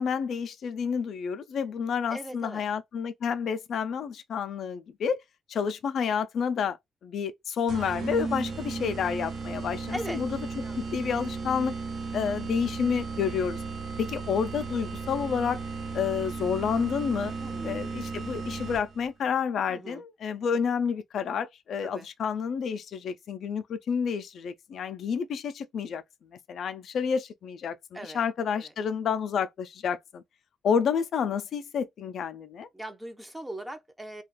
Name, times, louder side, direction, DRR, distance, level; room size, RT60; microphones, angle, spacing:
voice 1, 0.0-5.2 5.5-6.8 7.0-10.4 10.8-11.7 12.1-13.6 14.0-15.6 15.9-17.3 17.6-26.0 26.5-30.2 30.6-32.7, left 6 dB, 65° left, 0.4 m, -29 dB
voice 2, 2.1-2.6 9.9-10.2 10.6-10.8 17.4-17.8 19.7-20.0 21.8-22.1 27.9-28.2 28.6-28.7 32.7-34.2, right 1 dB, 10° right, 0.6 m, -39 dB
sound 1, 7.7-19.1, right 4 dB, 55° right, 0.9 m, -35 dB
2.4 x 2.3 x 3.1 m
cardioid pair, 90°, 0 cm